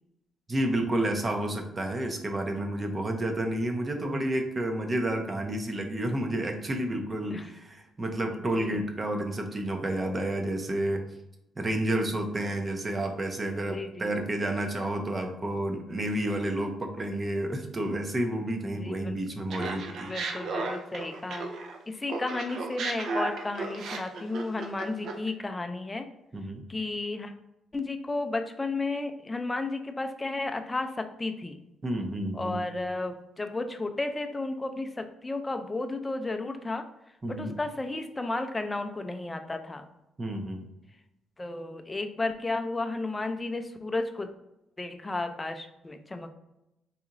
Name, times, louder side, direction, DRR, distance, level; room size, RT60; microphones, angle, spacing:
voice 1, 0.5-11.0 11.6-20.1 26.3-26.6 31.8-32.6 37.2-37.5 40.2-40.7, right 1 dB, 30° right, 4 dB, 0.6 m, -30 dB
voice 2, 8.3-8.8 13.7-14.2 18.7-19.2 19.9-21.6 21.9-26.1 26.7-27.3 27.7-31.6 32.3-36.8 37.3-39.8 41.4-44.3 44.8-46.3, left 2 dB, 20° left, 6 dB, 0.4 m, -33 dB
Laughter, 19.5-21.8 22.1-25.3, right 3 dB, 70° right, 0.5 m, -34 dB
4.0 x 2.8 x 2.5 m, 0.88 s
cardioid pair, 90°, 0 cm